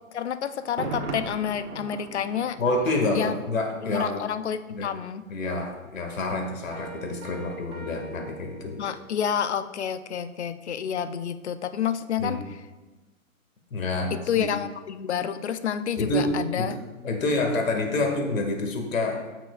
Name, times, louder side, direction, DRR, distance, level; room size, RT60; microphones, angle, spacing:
voice 1, 0.1-2.6 3.1-3.3 3.9-5.2 8.8-12.4 14.1-16.7, left 8 dB, 55° left, 12 dB, 0.6 m, -29 dB
Thunder, 0.6-4.5 4.8-4.9, right 4 dB, 90° right, 1.3 m, -38 dB
voice 2, 2.6-4.3 4.7-4.9 5.3-8.8 12.2-12.4 13.7-14.5 16.0-16.8 17.0-19.4, left 2 dB, 70° left, 3 dB, 2.0 m, -28 dB
sound 1, 6.7-9.2, right 6 dB, 50° right, 2.5 m, -42 dB
14.0 x 6.0 x 2.4 m, 1.2 s
hypercardioid pair, 165°, 41 cm